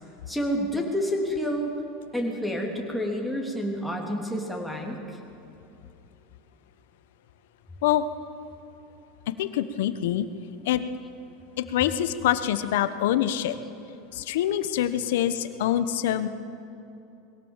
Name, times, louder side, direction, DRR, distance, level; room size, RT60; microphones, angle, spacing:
voice 1, 0.3-1.7 2.1-5.0, equal, ahead, 1 dB, 3.4 m, -29 dB
voice 2, 9.4-10.3 10.6-10.8 11.6-13.6 14.1-16.3, left 11 dB, 80° left, 12 dB, 1.2 m, -25 dB
22.0 x 17.5 x 7.5 m, 3.0 s
supercardioid pair, 120°, 0 cm